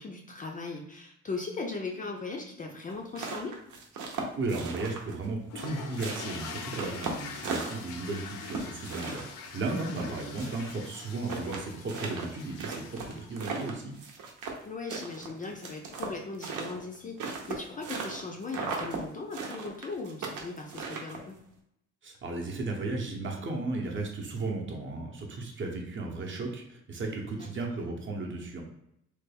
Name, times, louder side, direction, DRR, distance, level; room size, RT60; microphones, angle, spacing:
voice 1, 0.0-3.5 9.8-10.1 14.6-21.3 27.4-27.5, left 3 dB, 25° left, 1 dB, 0.4 m, -38 dB
sound 1, 2.9-5.3 5.6-8.1 8.5-10.7 11.0-11.1 11.3-14.6 14.9-18.2 18.5-19.0 19.3-21.4, right 5 dB, 75° right, 0.8 m, -37 dB
voice 2, 4.4-13.9 22.0-28.6, right 3 dB, 40° right, 1 dB, 0.8 m, -35 dB
sound 2, 5.5-14.0, left 5 dB, 75° left, 0.6 m, -44 dB
3.3 x 2.3 x 3.3 m, 0.78 s
cardioid pair, 125°, 31 cm